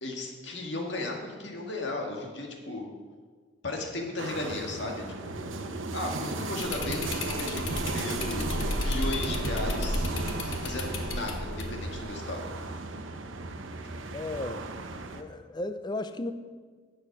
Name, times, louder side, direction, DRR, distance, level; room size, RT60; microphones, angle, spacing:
voice 1, 0.0-2.9 3.6-5.4 5.9-8.5 8.8-10.1 10.4-12.5, left 2 dB, 65° left, 1 dB, 1.9 m, -35 dB
sound 1, 4.2-15.2, right 2 dB, 80° right, 0.9 m, -35 dB
sound 2, 6.6-12.0, left 1 dB, 85° left, 1.3 m, -33 dB
voice 2, 14.1-14.6 15.1-16.3, left 2 dB, 20° left, 11 dB, 0.5 m, -34 dB
11.0 x 7.7 x 6.1 m, 1.5 s
head